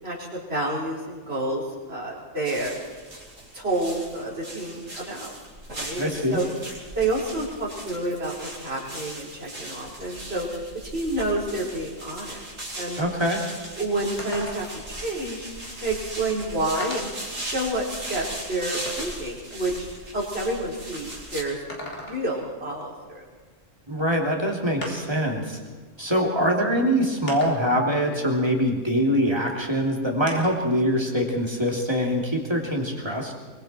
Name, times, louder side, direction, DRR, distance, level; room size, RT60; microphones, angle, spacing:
voice 1, 0.0-2.7 3.5-5.3 5.7-6.4 6.9-10.5 10.9-12.4 12.7-13.0 13.8-15.5 15.8-17.1 17.4-19.9 20.1-21.6 22.0-23.2, right 2 dB, 55° right, -4 dB, 5.0 m, -29 dB
sound 1, 2.4-21.4, right 1 dB, 85° right, 4.8 m, -38 dB
voice 2, 6.0-6.4 13.0-13.4 23.9-25.6 26.0-33.3, equal, 20° right, 0 dB, 3.2 m, -24 dB
sound 2, 14.2-14.9 16.0-16.1 16.8-17.3 17.9-19.3 21.5-22.5 24.0-24.1 24.8-25.3 26.3-26.4 27.3-27.9 30.3-30.7 31.1-32.2, left 1 dB, 65° left, 3.7 m, -38 dB
24.5 x 23.5 x 4.5 m, 1.5 s
omnidirectional pair, 1.3 m